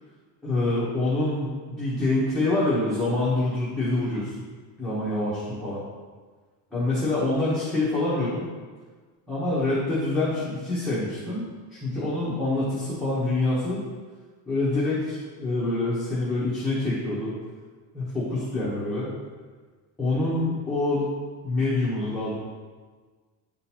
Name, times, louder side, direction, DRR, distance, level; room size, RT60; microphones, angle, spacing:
voice 1, 0.4-1.5 1.8-4.3 4.8-5.8 6.7-8.4 9.3-13.8 14.5-17.3 17.9-19.1 20.0-21.1 21.4-22.4, left 2 dB, ahead, -10 dB, 0.9 m, -26 dB
9.3 x 3.8 x 2.9 m, 1.4 s
cardioid pair, 160°, 45 cm